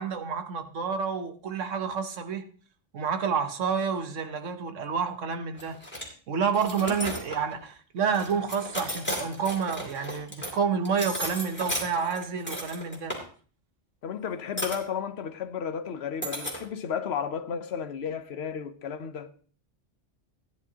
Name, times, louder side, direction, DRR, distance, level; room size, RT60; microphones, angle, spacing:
voice 1, 0.0-2.5 2.9-5.8 6.3-13.1, right 6 dB, 85° right, 1.4 m, -29 dB
sound 1, 5.5-6.0 6.5-7.6 8.1-10.5 10.9-13.2 14.6-14.8 16.2-16.6, equal, 10° left, 3.0 m, -34 dB
voice 2, 6.8-7.1 14.0-19.3, left 7 dB, 65° left, 1.1 m, -33 dB
16.0 x 10.0 x 2.9 m
omnidirectional pair, 1.2 m